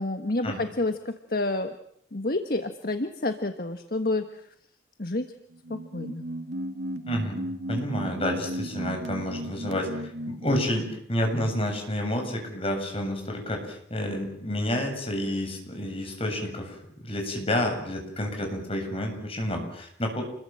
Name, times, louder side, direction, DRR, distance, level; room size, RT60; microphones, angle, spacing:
voice 1, 0.0-1.8 2.1-4.4 5.0-5.3 5.7-6.2, left 2 dB, 55° left, 7 dB, 1.5 m, -29 dB
sound 1, 5.5-10.8, right 1 dB, 80° right, 2.4 m, -35 dB
voice 2, 7.1-20.2, left 1 dB, 30° left, 3 dB, 7.9 m, -30 dB
29.5 x 22.0 x 7.8 m, 0.67 s
head